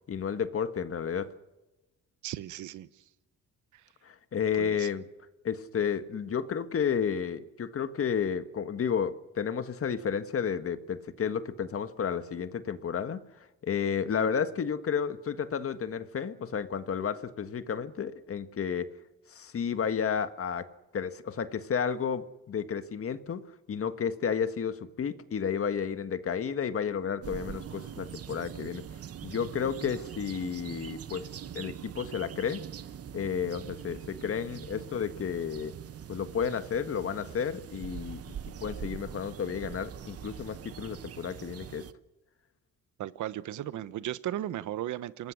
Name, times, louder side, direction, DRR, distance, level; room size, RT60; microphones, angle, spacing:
voice 1, 0.1-1.3 4.0-5.1 5.4-13.2 13.6-18.9 19.3-20.7 20.9-28.8 29.2-31.3 31.5-32.6 33.1-35.7 36.1-38.3 38.6-41.9, left 7 dB, 50° left, 10 dB, 1.6 m, -32 dB
voice 2, 2.2-2.9 4.6-4.9 43.0-45.3, right 12 dB, 80° right, 14 dB, 1.1 m, -36 dB
sound 1, 27.2-41.9, right 9 dB, 50° right, 1.1 m, -43 dB
26.5 x 19.5 x 6.5 m, 1.1 s
cardioid pair, 90°, 30 cm